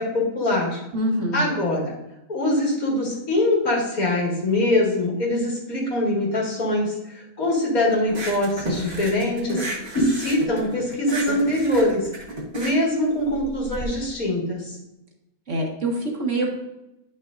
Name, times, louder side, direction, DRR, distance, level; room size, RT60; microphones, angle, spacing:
voice 1, 0.0-0.8 1.3-1.9 2.3-9.7 9.9-12.1 12.5-14.8, left 1 dB, 70° left, -4 dB, 2.7 m, -23 dB
voice 2, 0.9-1.5 15.5-16.5, right 1 dB, 55° right, 0 dB, 1.7 m, -25 dB
sound 1, 8.1-13.8, right 2 dB, 35° right, 1.4 m, -32 dB
9.7 x 6.1 x 2.6 m, 0.90 s
omnidirectional pair, 1.6 m